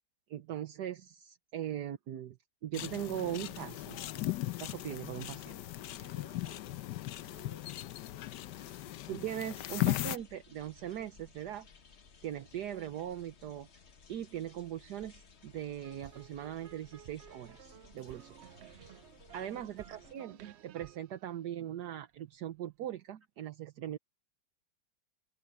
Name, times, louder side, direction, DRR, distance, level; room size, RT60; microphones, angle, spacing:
voice 1, 0.3-2.4 2.6-4.0 4.6-6.1 9.1-11.7 12.2-13.8 14.1-18.4 19.3-24.0, right 11 dB, 70° right, 1.4 m, -40 dB
sound 1, 2.7-10.2, left 15 dB, 80° left, 1.3 m, -37 dB
voice 2, 6.0-6.8 7.2-7.7 8.1-8.3 8.5-9.1 19.4-19.7, right 1 dB, 35° right, 3.9 m, -60 dB
sound 2, 9.3-20.1, left 5 dB, 40° left, 1.3 m, -59 dB
sound 3, 15.8-22.2, right 11 dB, 85° right, 0.5 m, -55 dB
open air
omnidirectional pair, 1.9 m